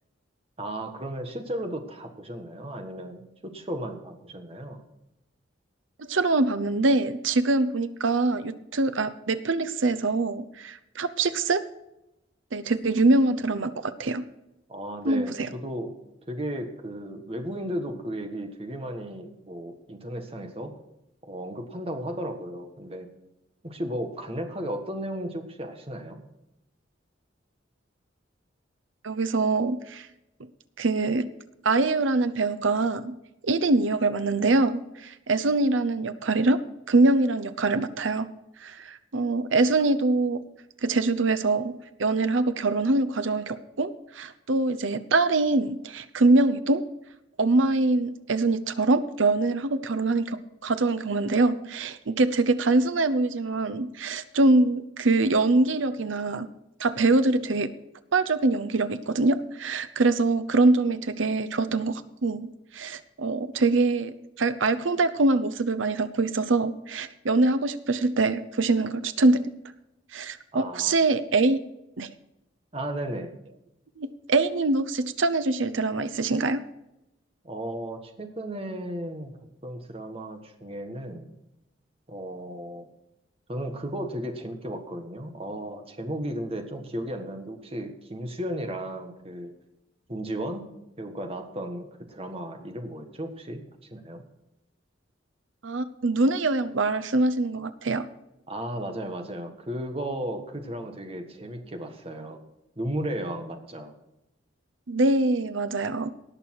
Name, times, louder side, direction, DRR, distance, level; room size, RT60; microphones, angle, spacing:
voice 1, 0.6-4.8 14.7-16.0 16.3-20.7 21.2-23.1 23.6-26.2 70.5-71.0 72.7-73.3 77.4-81.3 82.1-82.9 83.5-89.5 90.1-90.7 91.0-93.6 93.9-94.2 98.5-102.4 102.8-103.9, right 1 dB, 30° right, 5 dB, 1.5 m, -35 dB
voice 2, 6.0-11.6 12.5-14.2 15.0-15.5 29.0-30.1 30.8-31.3 31.6-33.1 33.4-36.6 36.9-38.3 38.6-40.4 40.8-46.8 47.4-56.5 56.8-57.7 58.1-69.5 70.1-71.6 72.0-72.1 74.0-76.6 95.6-98.1 104.9-106.1, right 2 dB, 80° right, 13 dB, 0.8 m, -24 dB
18.5 x 6.8 x 4.7 m, 0.90 s
head